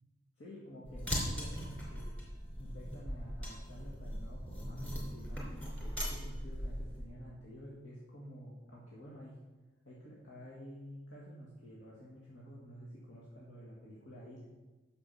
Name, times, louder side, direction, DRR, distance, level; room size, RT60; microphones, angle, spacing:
voice 1, 0.4-2.2 2.6-9.4 9.8-14.4, equal, 75° left, -6 dB, 2.0 m, -50 dB
sound 1, 0.9-7.0, equal, 10° left, 2.7 m, -39 dB
8.9 x 7.0 x 5.7 m, 1.2 s
head